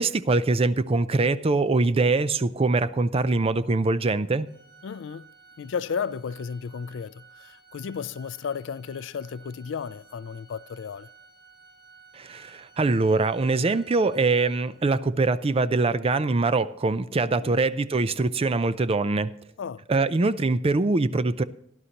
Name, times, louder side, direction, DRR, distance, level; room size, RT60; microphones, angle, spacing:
voice 1, 0.0-4.5 12.1-19.3 19.9-21.4, right 3 dB, 30° right, 0.5 m, -23 dB
Organ, 4.5-15.1, right 5 dB, 65° right, 2.8 m, -54 dB
voice 2, 4.8-5.3 5.6-11.1 17.4-17.6 19.6-19.9, left 6 dB, 70° left, 0.4 m, -34 dB
18.0 x 11.0 x 2.9 m
head